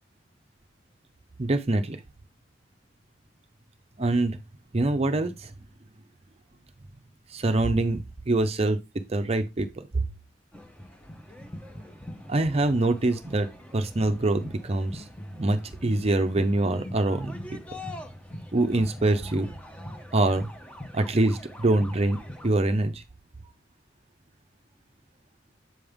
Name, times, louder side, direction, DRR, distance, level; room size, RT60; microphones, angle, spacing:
voice 1, 1.4-2.0 4.0-4.4 4.7-5.5 7.3-8.8 9.1-10.0 12.3-13.5 13.7-17.3 18.5-19.5 20.1-20.5 20.9-22.2 22.4-23.0, right 2 dB, 35° right, 0.6 m, -24 dB
sound 1, 10.5-22.5, left 1 dB, 5° left, 0.9 m, -42 dB
7.8 x 5.4 x 3.5 m
head